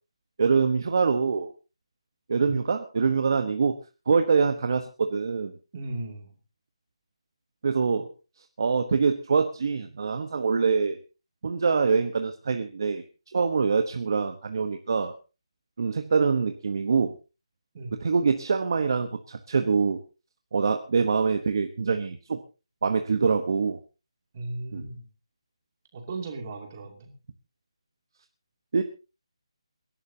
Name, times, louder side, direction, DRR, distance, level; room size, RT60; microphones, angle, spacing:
voice 1, 0.4-1.5 2.3-3.7 4.1-5.5 7.6-8.1 8.6-11.0 11.4-13.0 13.3-15.1 15.8-17.1 18.0-20.0 20.5-22.4 22.8-23.8 24.7-24.8 28.7-28.8, right 5 dB, 40° right, 7 dB, 1.1 m, -24 dB
voice 2, 5.7-6.4 17.7-18.1 24.3-25.1 25.9-27.1, right 2 dB, 25° right, 3 dB, 2.6 m, -36 dB
28.0 x 11.5 x 2.8 m, 0.31 s
hypercardioid pair, 175°, 3 cm